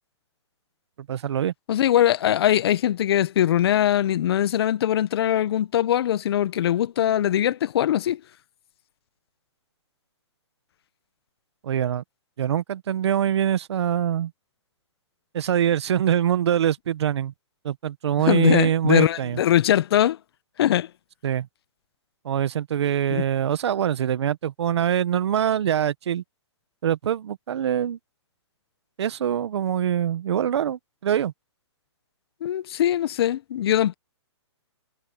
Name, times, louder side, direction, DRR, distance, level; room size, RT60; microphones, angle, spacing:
voice 1, 1.1-1.5 11.6-12.0 12.4-14.3 15.3-17.3 17.6-19.4 21.2-21.5 22.2-26.2 26.8-28.0 29.0-31.3, right 10 dB, 65° right, 1.5 m, -24 dB
voice 2, 1.7-8.2 18.3-20.2 20.6-20.9 23.1-23.2 32.4-33.9, left 11 dB, 55° left, 1.4 m, -21 dB
hypercardioid pair, 140°, 15 cm